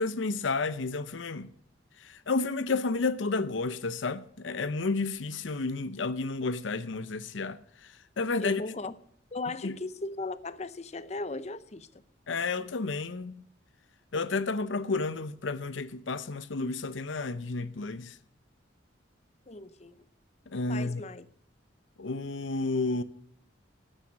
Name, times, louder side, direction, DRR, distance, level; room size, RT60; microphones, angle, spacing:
voice 1, 0.0-1.5 2.0-8.6 9.6-9.8 12.3-13.4 14.1-18.2 20.5-21.0 22.0-23.0, left 3 dB, 80° left, 0.7 m, -31 dB
voice 2, 8.4-8.9 9.3-12.0 19.5-20.0 20.7-21.2, left 2 dB, 35° left, 0.7 m, -37 dB
13.0 x 9.1 x 5.9 m
head